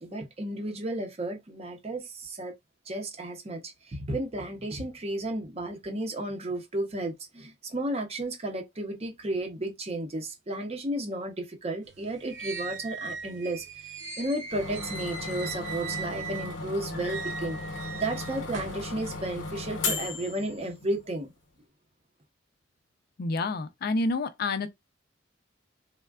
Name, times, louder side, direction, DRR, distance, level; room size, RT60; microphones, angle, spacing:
voice 1, 0.0-2.5 2.9-17.6 17.9-21.3, right 1 dB, 35° right, 0.7 m, -33 dB
sound 1, 11.9-16.6 16.9-18.8, right 5 dB, 90° right, 0.8 m, -39 dB
sound 2, 14.5-21.0, left 3 dB, 80° left, 0.8 m, -36 dB
voice 2, 23.2-24.7, left 3 dB, 55° left, 0.4 m, -28 dB
3.4 x 2.1 x 2.3 m
head